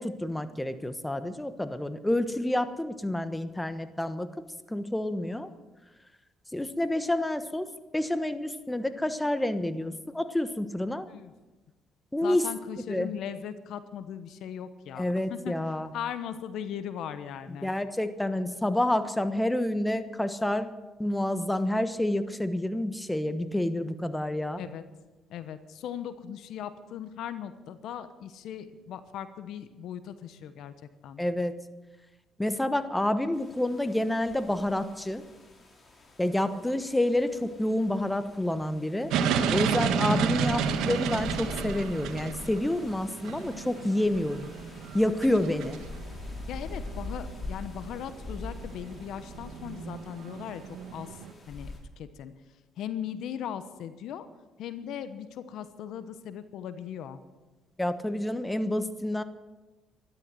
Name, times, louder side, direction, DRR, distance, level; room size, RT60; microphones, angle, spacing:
voice 1, 0.0-4.4 4.7-5.5 6.5-11.1 12.1-12.5 12.9-13.1 15.0-15.9 17.6-20.7 21.0-24.6 31.2-31.5 32.4-35.2 36.2-39.1 39.5-44.5 44.9-45.8 57.8-59.2, left 1 dB, 10° left, 11 dB, 1.2 m, -28 dB
voice 2, 12.2-15.5 15.9-17.7 24.6-24.8 25.3-30.7 31.0-31.2 40.1-40.4 46.5-50.6 50.9-51.2 51.5-52.3 52.8-54.3 54.6-57.2, left 9 dB, 75° left, 12 dB, 1.0 m, -38 dB
sound 1, 33.3-51.8, left 2 dB, 30° left, 3.9 m, -44 dB
sound 2, 39.1-51.3, right 7 dB, 80° right, 1.4 m, -32 dB
13.5 x 12.5 x 7.7 m, 1.1 s
supercardioid pair, 80°, 0 cm